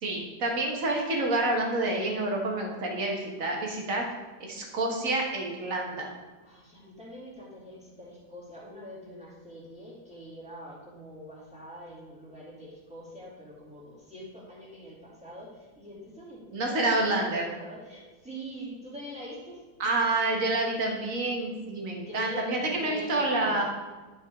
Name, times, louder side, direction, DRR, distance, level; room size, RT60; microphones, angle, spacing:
voice 1, 0.0-4.0 4.4-6.1 16.5-17.5 19.8-23.6, right 2 dB, 45° right, 0 dB, 1.6 m, -28 dB
voice 2, 6.4-19.6 22.1-23.6, equal, 5° right, -8 dB, 2.5 m, -43 dB
10.5 x 5.5 x 3.6 m, 1.2 s
omnidirectional pair, 2.1 m